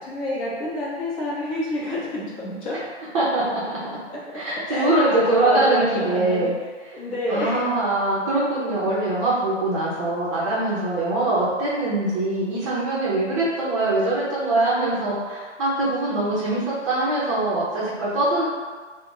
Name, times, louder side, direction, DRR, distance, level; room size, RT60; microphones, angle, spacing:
voice 1, 0.0-2.8 4.7-6.5 6.9-7.6, left 1 dB, 30° left, -7 dB, 0.8 m, -28 dB
voice 2, 3.1-3.8 4.3-6.5 7.3-18.4, right 2 dB, 30° right, -8 dB, 0.6 m, -23 dB
2.3 x 2.1 x 3.7 m, 1.5 s
hypercardioid pair, 135°, 36 cm